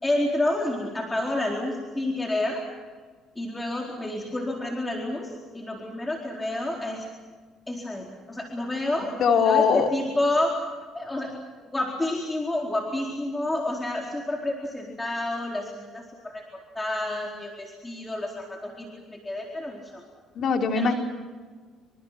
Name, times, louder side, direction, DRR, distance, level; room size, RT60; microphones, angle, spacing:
voice 1, 0.0-2.6 3.4-7.1 7.7-9.1 9.4-10.6 10.9-11.3 11.7-20.0 20.7-20.9, left 1 dB, 15° left, 0 dB, 4.3 m, -29 dB
voice 2, 9.2-9.9 20.3-20.9, left 6 dB, 60° left, 3 dB, 3.2 m, -21 dB
28.5 x 25.5 x 6.0 m, 1.5 s
supercardioid pair, 90°, 0 cm